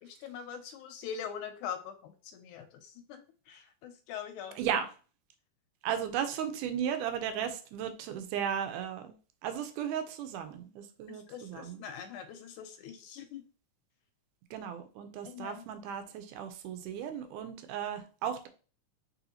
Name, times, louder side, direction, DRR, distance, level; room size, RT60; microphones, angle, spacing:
voice 1, 0.0-3.2 3.5-4.6 11.1-13.4 15.2-15.7, left 8 dB, 80° left, 8 dB, 1.9 m, -43 dB
voice 2, 5.8-9.1 9.4-11.8 14.5-18.5, right 8 dB, 85° right, 9 dB, 2.1 m, -35 dB
4.4 x 4.1 x 2.8 m, 0.37 s
omnidirectional pair, 3.6 m